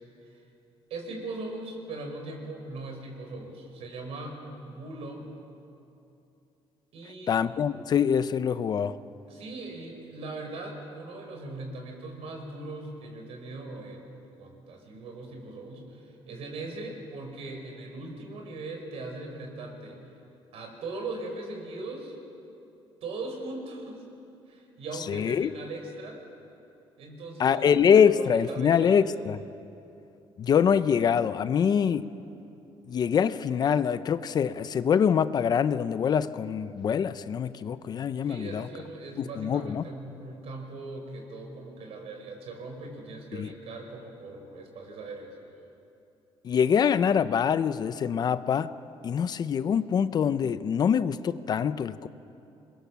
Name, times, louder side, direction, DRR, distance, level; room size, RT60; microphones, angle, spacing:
voice 1, 0.9-4.4 4.6-5.3 6.9-7.3 9.3-14.0 14.4-20.0 20.5-22.2 23.0-24.0 24.5-26.2 27.0-29.0 38.2-45.4, right 2 dB, 75° right, 3 dB, 5.1 m, -39 dB
voice 2, 7.3-9.0 25.1-25.5 27.4-29.4 30.4-32.1 32.9-38.7 39.2-39.8 43.3-43.5 46.4-48.7 49.0-52.1, left 7 dB, 40° left, 13 dB, 0.6 m, -24 dB
27.0 x 21.5 x 7.3 m, 2.8 s
cardioid pair, 155°, 10 cm